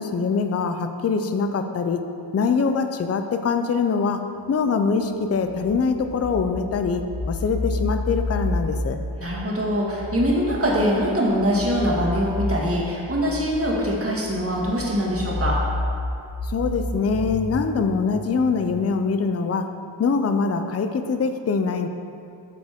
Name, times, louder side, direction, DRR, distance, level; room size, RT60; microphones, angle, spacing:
voice 1, 0.0-2.0 2.3-9.0 16.4-19.7 20.0-21.9, left 5 dB, 35° left, 7 dB, 0.4 m, -23 dB
sound 1, 4.5-4.6 5.0-19.0, left 2 dB, 75° left, 1.0 m, -31 dB
voice 2, 9.2-15.6, equal, 30° right, -4 dB, 1.6 m, -23 dB
9.2 x 6.6 x 3.5 m, 2.5 s
wide cardioid pair, 125°, 44 cm